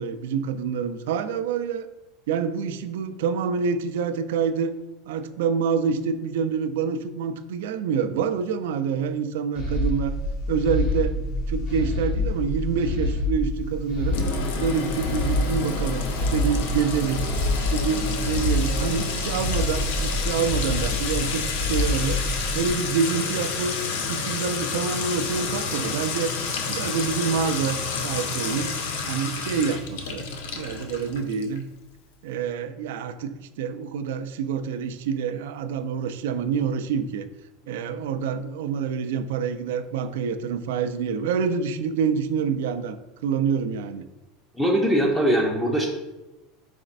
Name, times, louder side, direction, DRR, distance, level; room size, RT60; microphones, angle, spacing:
voice 1, 0.0-1.9 2.3-4.7 5.1-10.1 10.5-11.2 11.5-14.2 14.6-17.3 17.7-22.2 22.5-23.8 24.1-26.3 26.7-28.7 29.0-30.3 30.5-31.6 32.2-37.3 37.7-43.0 43.2-44.1, right 6 dB, 85° right, 10 dB, 0.3 m, -27 dB
sound 1, 9.5-22.7, left 1 dB, 65° left, 1.1 m, -27 dB
Sink (filling or washing) / Trickle dribble / Fill (with liquid), 14.1-31.6, left 4 dB, 80° left, 0.5 m, -30 dB
voice 2, 44.5-45.9, equal, 5° left, -1 dB, 0.5 m, -21 dB
4.1 x 4.0 x 2.5 m, 1.0 s
supercardioid pair, 145°, 0 cm